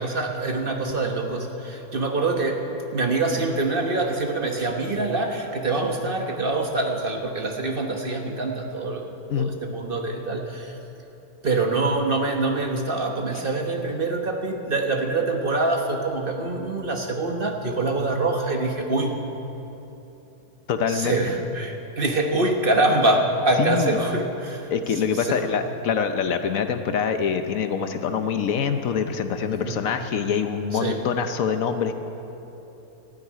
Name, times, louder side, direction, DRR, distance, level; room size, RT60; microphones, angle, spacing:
voice 1, 0.0-10.8 11.4-19.2 20.9-25.5 29.6-29.8 30.7-31.0, right 2 dB, 40° right, 2 dB, 1.2 m, -25 dB
voice 2, 20.7-21.2 23.6-23.9 24.7-31.9, left 7 dB, 70° left, 8 dB, 1.1 m, -25 dB
13.0 x 9.1 x 9.5 m, 3.0 s
omnidirectional pair, 1.6 m